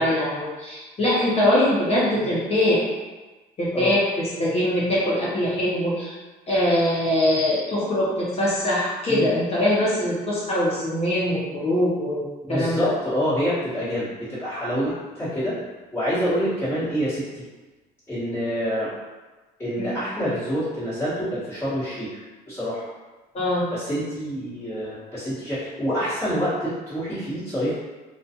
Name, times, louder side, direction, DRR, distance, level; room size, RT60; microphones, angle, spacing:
voice 1, 0.0-2.8 3.6-6.1 6.5-12.9 19.8-20.0 23.3-23.7, left 1 dB, 40° left, -7 dB, 0.7 m, -22 dB
voice 2, 12.4-15.6 15.9-17.4 18.1-18.9 19.6-22.8 23.7-27.7, equal, 15° left, -14 dB, 1.3 m, -27 dB
2.4 x 2.3 x 2.8 m, 1.2 s
cardioid pair, 110°, 17 cm